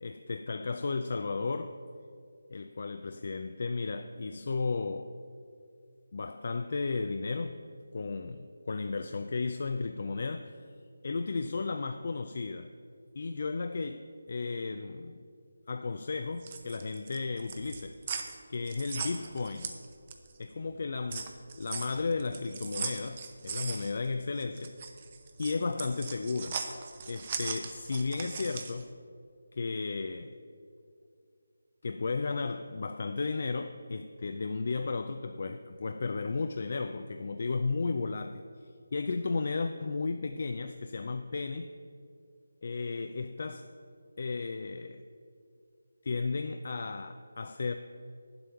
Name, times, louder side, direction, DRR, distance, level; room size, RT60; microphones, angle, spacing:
voice 1, 0.0-1.8 2.5-5.1 6.1-7.6 7.9-10.6 11.0-12.7 13.1-15.2 15.7-18.0 18.5-19.8 20.4-24.8 25.4-26.6 27.1-28.9 29.5-30.4 31.8-41.7 42.6-43.7 44.2-45.0 46.0-47.8, left 4 dB, 50° left, 8 dB, 0.4 m, -34 dB
sound 1, 16.2-20.4 20.7-28.8, right 5 dB, 30° right, 0.7 m, -39 dB
9.0 x 7.7 x 5.8 m, 2.4 s
figure-of-eight pair, 165°, 0 cm